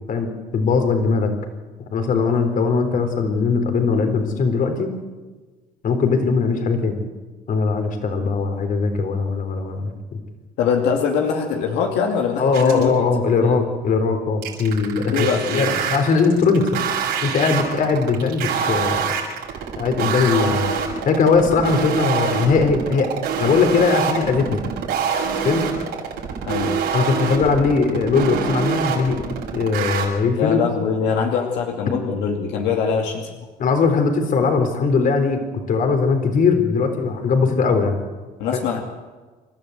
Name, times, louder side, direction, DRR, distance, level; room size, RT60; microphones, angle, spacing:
voice 1, 0.1-1.3 1.9-4.9 5.8-7.0 7.5-9.9 12.4-15.3 15.5-16.8 17.2-19.0 19.8-20.7 21.1-23.1 23.4-24.6 25.4-25.6 26.9-29.2 29.5-30.6 33.6-35.4 35.7-38.0 38.5-38.6, left 4 dB, 55° left, 6 dB, 3.9 m, -20 dB
voice 2, 10.6-12.9 13.4-13.6 15.1-15.8 26.4-26.8 30.4-33.3 38.4-38.8, left 6 dB, 90° left, 2 dB, 2.4 m, -22 dB
sound 1, 12.5-12.9 14.4-30.1, right 7 dB, 85° right, 6.2 m, -25 dB
27.5 x 13.0 x 8.1 m, 1.3 s
cardioid pair, 110°, 17 cm